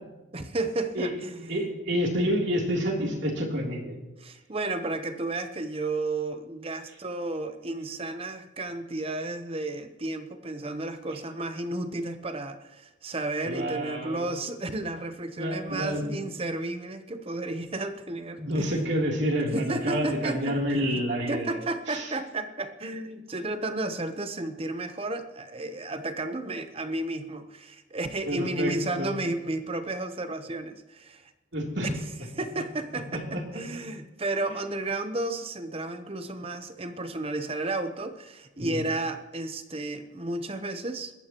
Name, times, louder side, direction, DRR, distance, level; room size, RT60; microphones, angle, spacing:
voice 1, 0.3-1.5 4.2-18.7 19.5-21.0 21.3-31.3 31.8-31.9 32.3-41.1, right 2 dB, 30° right, 9 dB, 0.8 m, -33 dB
voice 2, 1.5-4.0 13.4-14.3 15.4-16.2 18.4-21.6 21.9-22.1 28.3-29.2 31.5-31.9 33.1-33.4 38.6-38.8, equal, 55° right, -1 dB, 3.2 m, -29 dB
27.5 x 14.5 x 3.0 m, 1.1 s
head